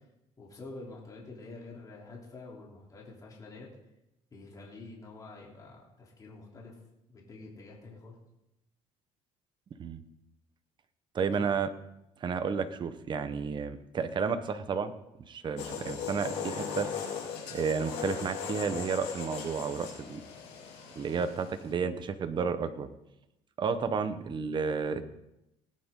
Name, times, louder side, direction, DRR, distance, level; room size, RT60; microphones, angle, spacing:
voice 1, 0.4-3.7 4.3-6.8 7.1-8.1 11.4-11.5, left 3 dB, 30° left, -3 dB, 3.3 m, -47 dB
voice 2, 11.1-11.7 12.2-14.9 15.3-16.9 17.5-20.2 20.9-22.9 23.6-25.0, right 5 dB, 40° right, 10 dB, 1.1 m, -31 dB
sound 1, 15.6-21.7, left 7 dB, 80° left, 4.5 m, -39 dB
18.5 x 9.9 x 3.8 m, 0.88 s
cardioid pair, 110°, 12 cm